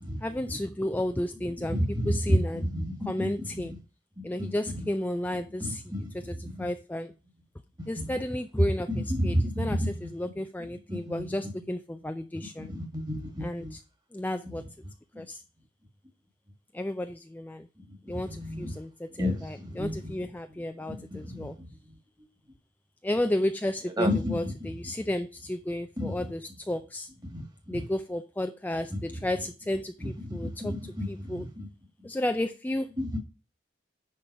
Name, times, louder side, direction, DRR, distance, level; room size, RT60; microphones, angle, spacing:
voice 1, 0.2-2.7 3.1-3.7 4.2-5.8 6.1-7.1 7.9-12.7 13.4-13.8 14.1-14.6 15.2-15.4 16.7-17.7 18.0-21.6 23.0-27.1 27.7-31.5 32.0-32.9, left 1 dB, 10° left, 0.3 m, -32 dB
voice 2, 1.7-2.4 2.7-3.7 4.2-4.8 5.6-6.1 6.4-6.5 8.9-10.1 10.9-11.2 12.7-13.7 15.1-15.2 18.1-18.7 19.2-20.1 20.9-21.7 24.0-24.4 26.0-26.3 27.2-27.4 27.7-27.8 28.9-29.0 30.0-31.7 33.0-33.2, equal, 25° right, 2.0 m, -31 dB
10.0 x 3.8 x 5.5 m
head